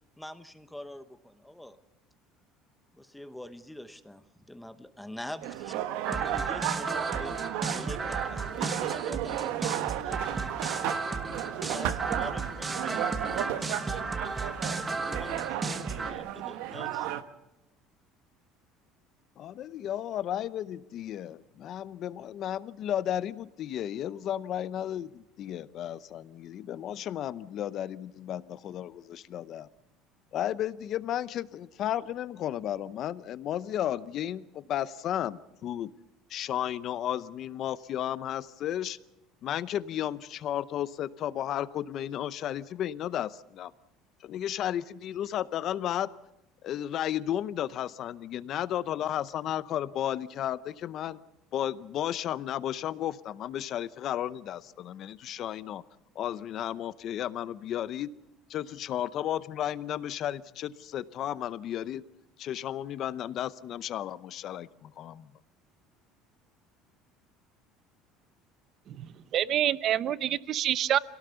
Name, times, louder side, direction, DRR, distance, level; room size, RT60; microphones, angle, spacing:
voice 1, 0.2-1.8 2.9-7.4 7.7-10.5 10.8-11.3 11.7-14.3 14.9-17.1, left 1 dB, 5° left, 11 dB, 0.8 m, -45 dB
sound 1, 5.4-17.2, right 13 dB, 70° right, 1.2 m, -34 dB
sound 2, 6.0-16.1, right 3 dB, 15° right, 1.3 m, -34 dB
voice 2, 19.4-29.7 30.3-35.9 36.3-39.0 39.4-43.7 44.2-46.1 46.6-51.2 51.5-55.8 56.1-58.1 58.5-62.0 62.4-65.3, left 11 dB, 40° left, 17 dB, 0.7 m, -33 dB
voice 3, 69.3-71.0, right 11 dB, 40° right, 16 dB, 0.7 m, -27 dB
26.0 x 17.5 x 6.9 m, 0.89 s
cardioid pair, 165°, 0 cm